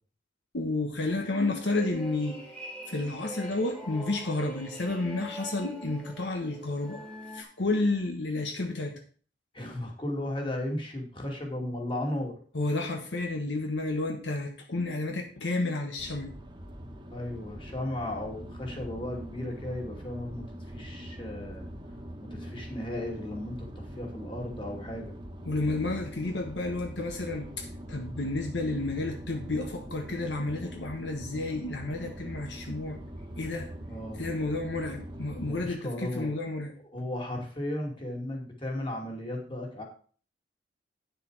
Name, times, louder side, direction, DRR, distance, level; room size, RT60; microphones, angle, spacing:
voice 1, 0.5-2.4 2.9-7.1 7.3-9.0 12.5-16.3 25.4-33.0 33.4-33.7 34.2-36.7, left 2 dB, 75° left, 4 dB, 1.3 m, -31 dB
sound 1, 1.1-7.4, right 1 dB, 5° left, 1.9 m, -44 dB
voice 2, 9.5-12.4 17.1-21.7 22.2-25.1 33.9-34.3 35.4-36.3 36.8-39.8, left 1 dB, 30° left, 1 dB, 2.4 m, -35 dB
sound 2, 16.0-35.7, equal, 25° right, 1.4 m, -43 dB
9.5 x 6.9 x 4.8 m, 0.42 s
head